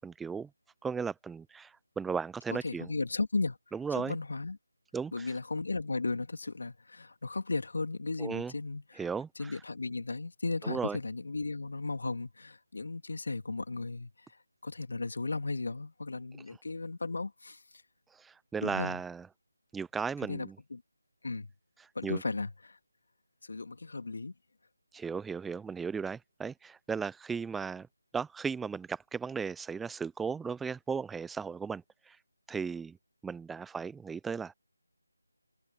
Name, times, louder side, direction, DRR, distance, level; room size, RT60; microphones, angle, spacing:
voice 1, 0.0-0.5 0.8-2.9 3.7-4.2 4.9-5.3 8.2-8.5 9.0-9.6 10.6-11.0 18.1-19.3 19.7-20.6 21.8-22.2 24.9-27.9 28.1-32.2 32.5-33.0 33.2-34.5, right 5 dB, 5° right, 0.6 m, -36 dB
voice 2, 2.5-3.6 3.9-4.6 5.1-9.0 9.4-14.1 14.6-17.6 18.6-19.0 20.2-20.8 21.2-21.5 21.9-22.8 23.4-24.3, left 3 dB, 60° left, 2.9 m, -35 dB
figure-of-eight pair, 160°, 0 cm